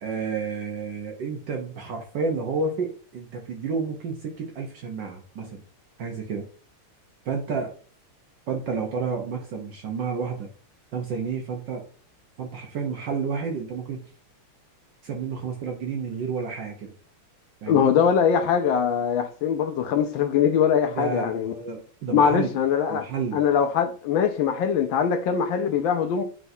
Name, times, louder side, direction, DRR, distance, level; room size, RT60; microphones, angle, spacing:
voice 1, 0.0-5.6 6.0-6.4 7.2-7.7 8.5-10.5 10.9-11.9 12.4-14.1 15.0-16.9 17.6-17.9 20.8-22.6 22.9-23.4, right 5 dB, 65° right, 1.4 m, -30 dB
voice 2, 17.7-21.5 22.1-23.0 23.3-26.2, left 7 dB, 70° left, 1.3 m, -22 dB
9.1 x 3.9 x 2.7 m
omnidirectional pair, 2.4 m